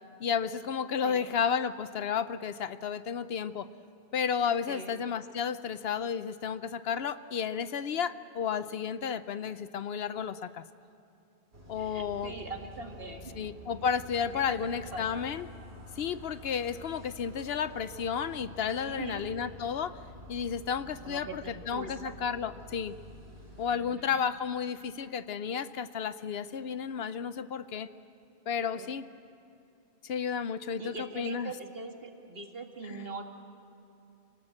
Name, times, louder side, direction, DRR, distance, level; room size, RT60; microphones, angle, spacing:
voice 1, 0.2-3.7 4.1-10.6 11.7-12.3 13.3-15.5 16.0-20.0 20.3-23.0 23.6-27.9 28.5-29.1 30.0-31.5 32.9-33.1, left 7 dB, 70° left, 13 dB, 0.9 m, -32 dB
voice 2, 1.0-1.3 4.7-5.0 11.8-13.4 14.2-15.3 18.8-19.3 21.0-22.1 23.7-24.2 28.6-29.0 30.8-33.2, right 3 dB, 60° right, 3 dB, 2.1 m, -42 dB
sound 1, 11.5-23.7, left 1 dB, 75° right, 3.4 m, -49 dB
25.0 x 18.5 x 7.7 m, 2.8 s
omnidirectional pair, 1.1 m